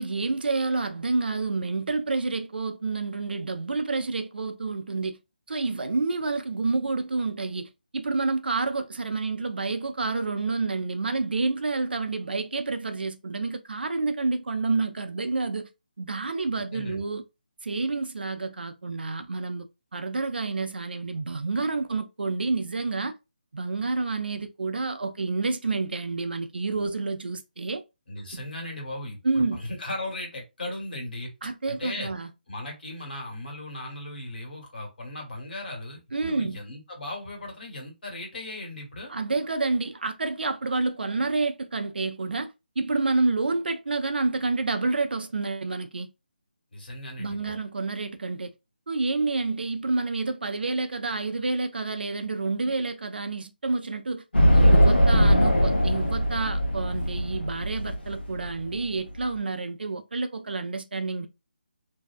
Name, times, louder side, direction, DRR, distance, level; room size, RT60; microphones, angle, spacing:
voice 1, 0.0-5.2 5.5-15.7 16.0-17.2 17.6-19.7 19.9-23.1 23.5-27.8 28.3-28.4 29.2-29.6 31.4-32.3 36.1-36.6 39.1-46.1 47.2-48.5 48.9-54.2 54.5-61.3, right 3 dB, 70° right, 0.4 m, -29 dB
voice 2, 16.7-17.0 28.1-31.3 31.7-32.1 32.5-39.1 46.7-47.6, left 1 dB, 65° left, 1.4 m, -37 dB
sound 1, 54.3-59.2, equal, 90° left, 0.8 m, -20 dB
2.6 x 2.2 x 2.3 m
figure-of-eight pair, 155°, 6 cm